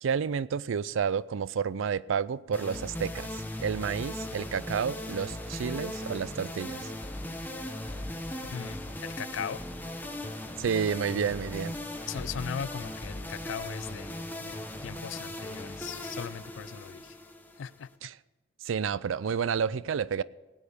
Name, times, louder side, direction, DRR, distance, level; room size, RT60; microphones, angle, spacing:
voice 1, 0.0-6.9 10.6-11.8 18.0-18.2 18.6-20.2, right 7 dB, 80° right, 0.4 m, -30 dB
sound 1, 2.5-17.9, left 1 dB, 10° left, 1.0 m, -38 dB
voice 2, 8.5-9.6 12.1-17.2 17.6-17.9, left 7 dB, 75° left, 0.4 m, -39 dB
17.5 x 8.7 x 5.1 m
head